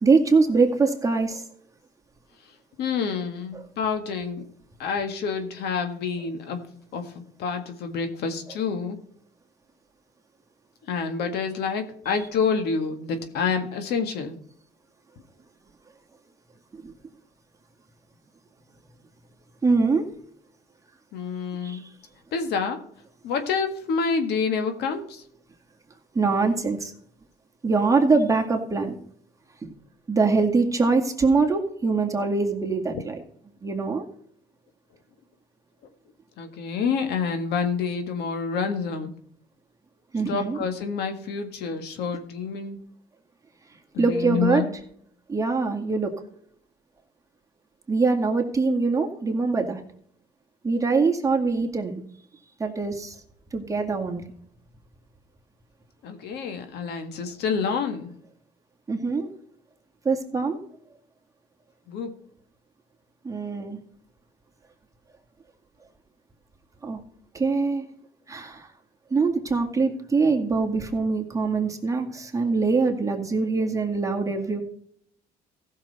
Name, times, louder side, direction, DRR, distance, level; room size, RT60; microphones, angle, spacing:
voice 1, 0.0-1.4 16.7-16.9 19.6-20.1 21.6-21.9 26.1-26.9 27.6-29.0 29.6-29.7 30.1-33.2 33.6-34.0 40.1-40.6 44.0-44.6 45.3-46.1 47.9-49.8 50.6-52.0 52.6-53.2 53.5-54.2 58.9-59.3 60.0-60.6 63.2-63.8 66.8-67.0 67.3-67.9 68.3-68.7 69.1-74.6, right 4 dB, 20° right, 2 dB, 2.0 m, -23 dB
voice 2, 2.8-4.5 4.8-9.0 10.9-14.4 21.1-21.8 22.3-22.8 23.2-25.2 32.9-33.0 36.4-39.1 40.3-42.8 43.9-44.7 56.0-58.1 61.9-62.1, left 5 dB, 75° left, 7 dB, 1.7 m, -28 dB
15.0 x 6.6 x 4.2 m, 0.64 s
cardioid pair, 110°, 17 cm